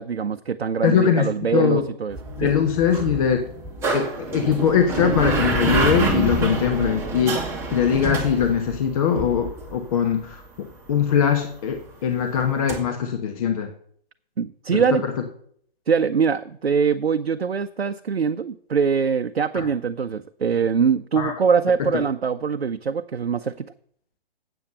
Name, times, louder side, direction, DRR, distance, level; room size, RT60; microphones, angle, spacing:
voice 1, 0.0-2.5 14.4-15.0 15.9-23.7, right 6 dB, 80° right, 8 dB, 0.6 m, -23 dB
voice 2, 0.8-1.8 2.4-3.4 3.9-7.5 7.7-10.4 10.9-13.7 14.7-15.1 19.5-19.7 21.2-21.3 21.8-21.9, left 7 dB, 35° left, 6 dB, 1.1 m, -21 dB
sound 1, 2.1-9.7 12.7-12.8, right 3 dB, 10° right, 1.6 m, -27 dB
7.9 x 7.1 x 7.8 m, 0.62 s
figure-of-eight pair, 135°, 30 cm